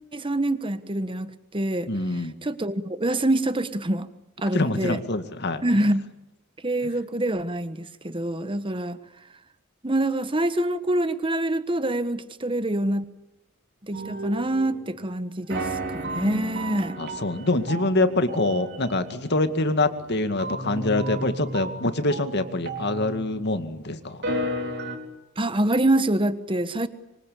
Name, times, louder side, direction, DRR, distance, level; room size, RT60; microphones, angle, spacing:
voice 1, 0.1-1.9 2.4-4.1 4.4-5.0 5.6-6.1 6.6-9.0 9.8-13.0 13.8-17.0 25.4-26.9, right 1 dB, 25° right, 12 dB, 1.4 m, -25 dB
voice 2, 1.9-2.4 4.5-5.6 17.0-24.2, left 2 dB, 55° left, 9 dB, 2.2 m, -25 dB
sound 1, 13.9-15.1 15.5-23.6 24.1-25.0, right 1 dB, 55° right, 4.3 m, -33 dB
25.0 x 24.5 x 8.6 m, 0.97 s
head